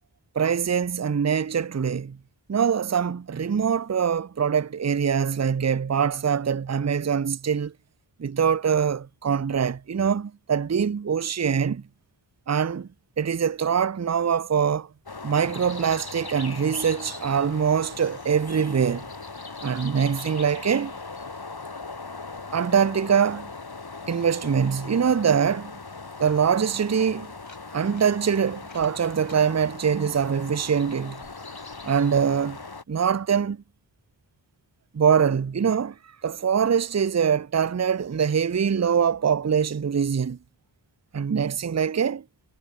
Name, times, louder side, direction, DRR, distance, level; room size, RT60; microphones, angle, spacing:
voice 1, 0.4-2.2 2.5-7.7 8.2-11.8 12.5-12.9 13.2-14.9 15.2-19.1 19.6-20.9 22.5-23.5 24.1-25.7 26.2-27.3 27.7-31.2 31.9-32.6 32.9-33.6 34.9-35.9 36.2-40.4 41.1-42.2, right 7 dB, 35° right, 0.6 m, -23 dB
sound 1, 15.1-32.8, left 3 dB, 55° left, 2.3 m, -39 dB
sound 2, 27.2-28.2 28.5-29.4, left 3 dB, 90° left, 7.1 m, -52 dB
wide cardioid pair, 50°, 45 cm